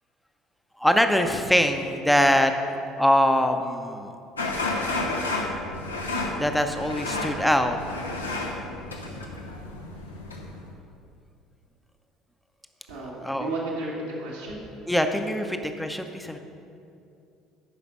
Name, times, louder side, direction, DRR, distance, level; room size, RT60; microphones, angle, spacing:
voice 1, 0.8-2.5 3.0-4.1 6.4-7.8 9.1-9.4 13.2-13.5 14.9-16.4, equal, 5° left, 6 dB, 0.7 m, -23 dB
sound 1, 4.4-10.7, left 2 dB, 85° left, 0.8 m, -31 dB
voice 2, 12.9-14.7, right 2 dB, 75° right, -7 dB, 1.5 m, -33 dB
11.0 x 5.0 x 5.3 m, 2.6 s
figure-of-eight pair, 60°, 0 cm